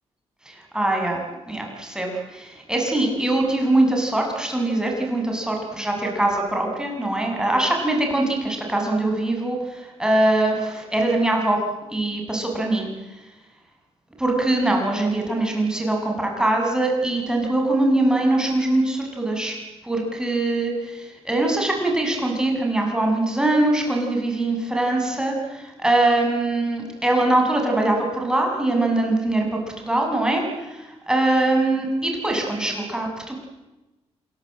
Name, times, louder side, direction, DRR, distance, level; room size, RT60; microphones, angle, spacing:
voice 1, 0.5-1.2 1.5-11.6 11.9-13.2 14.2-19.6 19.8-33.3, right 2 dB, 5° right, 1 dB, 7.0 m, -22 dB
27.0 x 22.5 x 8.8 m, 1.1 s
cardioid pair, 125°, 12 cm